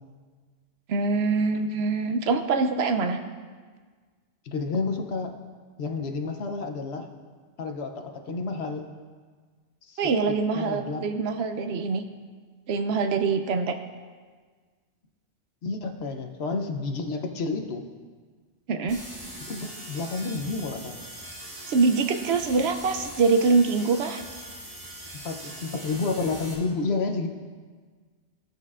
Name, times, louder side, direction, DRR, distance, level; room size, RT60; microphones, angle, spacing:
voice 1, 0.9-3.2 10.0-12.0 12.7-13.8 18.7-19.0 21.7-24.2, right 4 dB, 70° right, 7 dB, 0.8 m, -24 dB
voice 2, 4.4-5.3 5.8-7.1 7.6-8.9 9.9-10.0 10.5-11.0 15.6-17.9 19.5-21.0 25.1-27.3, left 3 dB, 70° left, 5 dB, 1.0 m, -30 dB
sound 1, 18.9-26.5, right 1 dB, 30° right, 1.9 m, -41 dB
15.5 x 6.6 x 2.4 m, 1.5 s
omnidirectional pair, 1.2 m